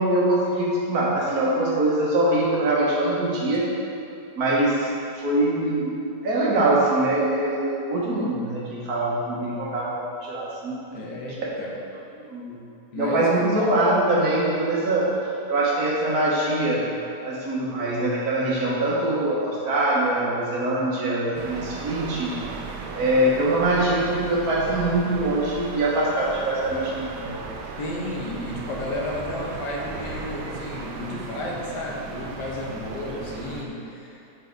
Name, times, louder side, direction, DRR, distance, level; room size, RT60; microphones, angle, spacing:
voice 1, 0.0-3.7 4.3-4.9 5.1-5.9 6.2-10.8 12.2-12.6 13.0-15.1 15.5-16.8 17.2-22.4 22.9-27.3, right 1 dB, 60° right, -5 dB, 1.7 m, -23 dB
voice 2, 10.9-11.8 12.9-13.3 27.8-34.2, left 1 dB, 80° left, -2 dB, 1.6 m, -32 dB
sound 1, 21.3-33.6, right 4 dB, 85° right, 1.3 m, -36 dB
6.4 x 4.8 x 4.5 m, 2.7 s
omnidirectional pair, 1.8 m